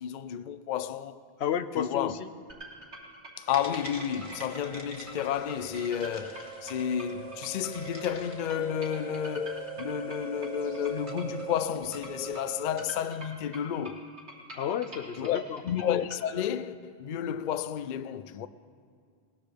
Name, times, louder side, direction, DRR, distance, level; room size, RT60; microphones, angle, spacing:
voice 1, 0.0-1.2 1.8-2.1 3.4-14.0 15.2-18.5, left 9 dB, 60° left, 0.5 m, -31 dB
voice 2, 1.4-2.3 14.5-15.6, left 9 dB, 80° left, 0.9 m, -32 dB
sound 1, 2.5-16.2, right 1 dB, 85° right, 3.1 m, -46 dB
sound 2, 3.5-13.0, right 4 dB, 30° left, 1.8 m, -41 dB
22.0 x 19.0 x 3.4 m
omnidirectional pair, 1.1 m